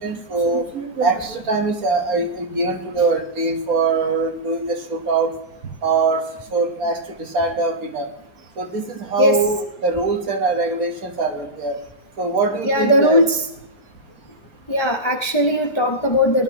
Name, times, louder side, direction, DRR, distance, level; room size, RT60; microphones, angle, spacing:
voice 1, 0.0-5.3 5.8-6.2 6.5-8.1 8.6-11.8 12.2-13.2, right 3 dB, 60° right, 3 dB, 1.8 m, -22 dB
voice 2, 12.7-13.4 14.7-16.4, equal, 20° left, 3 dB, 0.8 m, -18 dB
19.0 x 11.5 x 3.0 m, 0.78 s
omnidirectional pair, 1.7 m